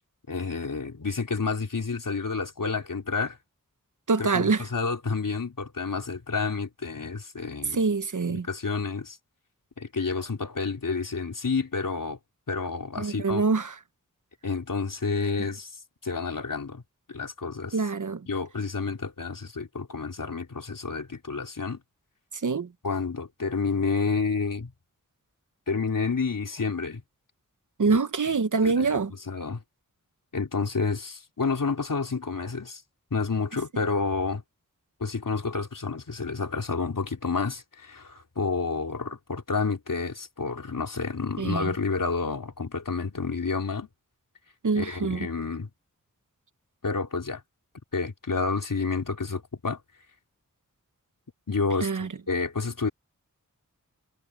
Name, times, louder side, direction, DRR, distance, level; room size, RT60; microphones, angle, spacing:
voice 1, 0.3-3.4 4.3-7.8 8.3-9.2 9.8-12.2 12.5-13.4 14.4-15.7 16.0-16.8 17.1-17.8 18.3-21.8 22.8-24.7 25.7-27.0 27.8-28.0 28.6-29.0 29.3-29.6 30.3-32.8 33.1-34.4 35.0-43.9 44.8-45.7 46.8-47.4 47.9-49.8 51.5-51.9 52.3-52.9, left 4 dB, 75° left, 4.0 m, -29 dB
voice 2, 4.1-4.7 7.7-8.5 13.0-13.8 17.7-18.3 22.4-22.7 27.8-29.1 41.4-41.7 44.6-45.3 51.8-52.1, right 4 dB, 65° right, 1.1 m, -25 dB
wide cardioid pair, 60°, 33 cm